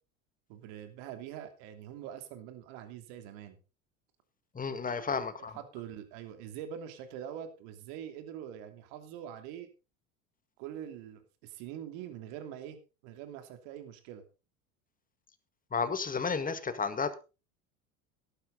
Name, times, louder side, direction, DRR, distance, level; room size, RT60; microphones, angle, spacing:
voice 1, 0.5-3.6 4.8-5.2 5.5-9.7 10.6-12.8 13.0-14.2, right 10 dB, 65° right, 8 dB, 3.0 m, -44 dB
voice 2, 4.6-5.6 15.7-17.1, left 5 dB, 20° left, 11 dB, 2.0 m, -32 dB
13.5 x 12.0 x 4.0 m, 0.31 s
hypercardioid pair, 85°, 41 cm